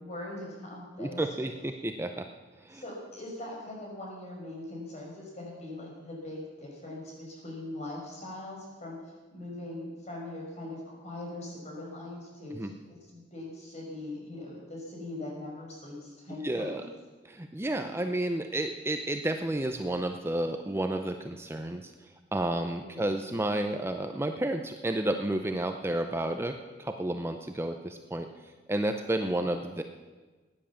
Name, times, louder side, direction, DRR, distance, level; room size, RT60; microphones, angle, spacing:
voice 1, 0.0-1.5 2.7-9.0 9.3-16.8 22.7-23.1 29.4-29.5, left 1 dB, 40° left, -2 dB, 5.4 m, -41 dB
voice 2, 1.0-2.3 2.6-2.8 12.5-12.7 16.4-16.8 17.3-21.9 22.3-28.3 28.7-29.8, right 1 dB, 15° right, 6 dB, 0.6 m, -31 dB
15.5 x 10.0 x 7.2 m, 1.3 s
head